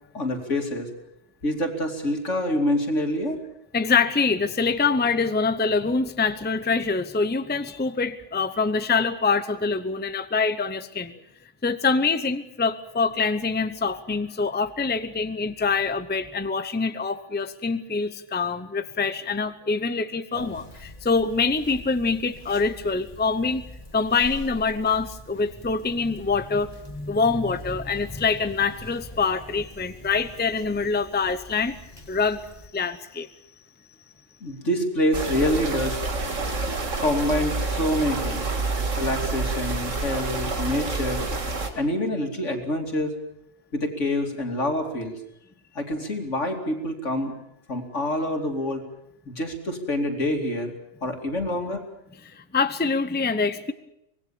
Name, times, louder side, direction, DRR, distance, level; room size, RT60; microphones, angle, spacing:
voice 1, 0.1-0.9 1.4-3.4 34.4-36.0 37.0-38.4 39.0-41.2 41.7-43.1 43.7-45.2 45.7-47.3 47.7-48.8 49.3-50.7 51.0-51.8, left 1 dB, 75° left, 3 dB, 3.3 m, -26 dB
voice 2, 3.7-11.2 11.6-23.6 23.9-31.8 32.1-32.4 32.7-33.3 52.2-53.7, left 4 dB, 10° left, 11 dB, 0.7 m, -25 dB
Conversation, 20.3-32.7, left 1 dB, 35° left, 2.1 m, -45 dB
sound 1, 35.1-41.7, right 3 dB, 85° right, 2.4 m, -28 dB
24.5 x 19.0 x 7.2 m, 0.82 s
omnidirectional pair, 1.3 m